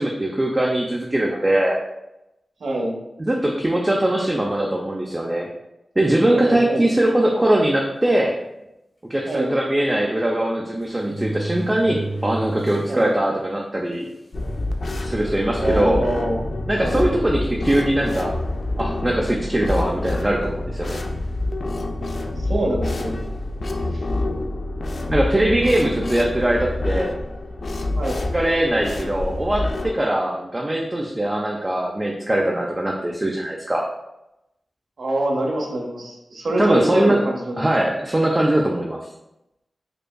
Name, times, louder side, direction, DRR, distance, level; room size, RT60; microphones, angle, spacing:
voice 1, 0.0-1.8 3.2-5.5 6.0-8.4 9.1-14.1 15.0-16.0 16.7-18.3 18.8-21.0 25.1-27.1 28.3-33.8 36.6-37.2 37.6-39.1, right 1 dB, 20° right, -1 dB, 0.4 m, -21 dB
voice 2, 2.6-2.9 6.3-6.8 9.2-9.5 12.9-13.1 15.6-16.4 16.8-17.0 22.4-23.2 23.9-24.0 28.0-28.2 35.0-37.6, right 1 dB, 85° right, -1 dB, 0.8 m, -25 dB
sound 1, 7.2-7.4 8.2-8.3 8.6-8.7 10.0-10.1 10.8-13.0 13.5-13.6 14.4-14.5 14.9-15.2 15.9-16.0 17.3-18.1 19.1-19.3, right 2 dB, 90° left, 1.4 m, -33 dB
sound 2, 14.3-29.9, left 2 dB, 60° left, 0.3 m, -27 dB
5.0 x 2.2 x 2.2 m, 0.90 s
wide cardioid pair, 85°, 0 cm